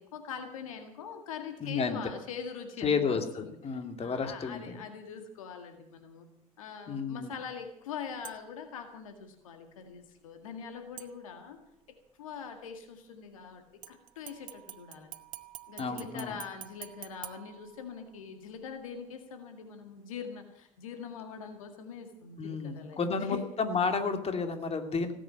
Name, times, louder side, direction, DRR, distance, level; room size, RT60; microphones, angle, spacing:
voice 1, 0.0-6.3 6.6-11.6 12.2-15.1 15.7-23.4, left 6 dB, 85° left, 6 dB, 2.0 m, -43 dB
voice 2, 1.6-2.0 2.8-4.8 6.9-7.3 15.8-16.4 22.4-25.1, left 5 dB, 35° left, 7 dB, 2.5 m, -31 dB
sound 1, 8.2-8.7 11.0-11.7 13.8-18.2 18.6-18.7, right 13 dB, 50° right, 1.2 m, -48 dB
17.5 x 9.1 x 8.8 m, 0.72 s
hypercardioid pair, 65°, 17 cm